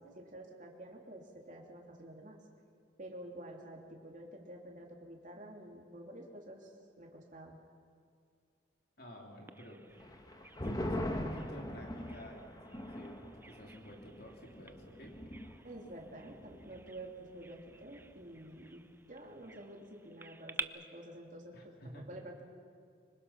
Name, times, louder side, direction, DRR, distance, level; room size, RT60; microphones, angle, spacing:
voice 1, 0.0-2.4 3.0-7.6 15.6-22.4, right 1 dB, 40° right, 0 dB, 3.2 m, -49 dB
voice 2, 9.0-9.9 10.6-15.4 21.5-22.2, equal, 55° left, 0 dB, 3.2 m, -51 dB
Bird vocalization bird call bird song, 9.5-20.6, right 3 dB, 10° right, 0.5 m, -51 dB
sound 1, 10.0-16.9 17.2-17.3 17.7-18.2, left 1 dB, 20° left, 1.4 m, -42 dB
25.5 x 25.0 x 5.8 m, 2.2 s
head